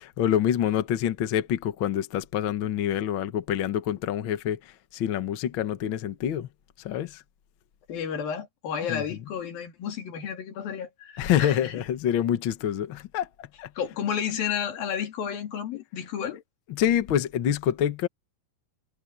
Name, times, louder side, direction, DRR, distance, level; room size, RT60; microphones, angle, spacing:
voice 1, 0.0-6.5 6.8-7.2 8.9-9.0 11.2-13.7 16.7-18.1, left 10 dB, 65° left, 1.2 m, -26 dB
voice 2, 7.9-11.8 13.8-16.4, left 8 dB, 85° left, 4.4 m, -32 dB
omnidirectional pair, 4.0 m